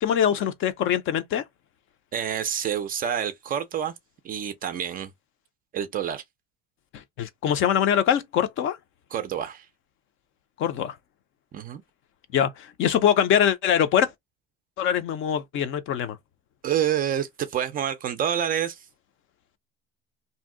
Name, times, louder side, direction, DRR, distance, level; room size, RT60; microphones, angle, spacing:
voice 1, 0.0-1.4 6.9-8.8 10.6-11.0 12.3-14.1 14.8-16.2, left 9 dB, 40° left, 0.4 m, -23 dB
voice 2, 2.1-3.9 4.2-5.1 5.7-6.2 9.1-9.7 11.5-11.8 16.6-18.9, right 9 dB, 30° right, 0.4 m, -28 dB
2.6 x 2.0 x 3.6 m
cardioid pair, 145°, 31 cm